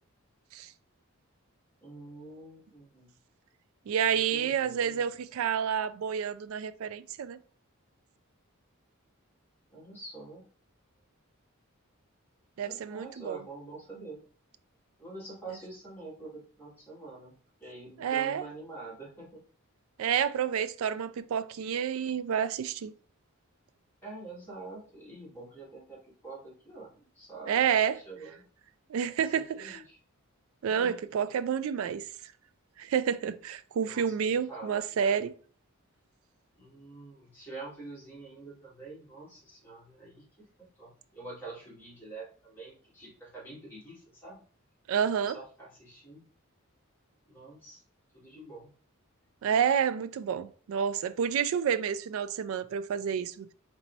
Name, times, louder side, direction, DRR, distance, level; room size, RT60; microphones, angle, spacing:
voice 1, 1.8-3.1 4.1-5.1 9.7-10.4 12.7-14.2 15.0-17.3 17.6-19.4 24.0-26.0 26.2-27.5 27.9-28.4 29.2-30.0 30.6-30.9 33.8-35.2 36.5-40.2 40.8-44.4 45.2-46.2 47.3-47.8 48.1-48.7, right 3 dB, 10° left, 2.0 m, -46 dB
voice 2, 3.9-7.4 12.6-13.4 15.5-15.6 18.0-18.4 20.0-22.9 27.5-28.0 28.9-29.8 30.6-32.1 32.8-35.3 44.9-45.4 49.4-53.5, right 8 dB, 70° right, 0.3 m, -29 dB
4.1 x 3.4 x 2.7 m
head